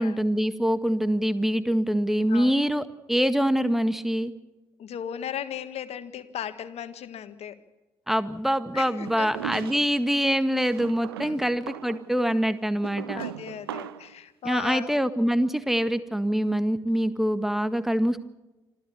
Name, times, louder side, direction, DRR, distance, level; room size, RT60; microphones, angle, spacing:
voice 1, 0.0-4.3 8.1-13.2 14.4-18.2, equal, ahead, 11 dB, 1.8 m, -25 dB
voice 2, 4.8-7.6 8.7-9.3 11.2-11.4 13.1-15.0, left 9 dB, 60° left, 11 dB, 1.6 m, -36 dB
sound 1, 9.0-10.0 10.7-14.1, right 12 dB, 85° right, 0.6 m, -38 dB
26.5 x 14.5 x 7.0 m, 1.1 s
figure-of-eight pair, 40°, 12 cm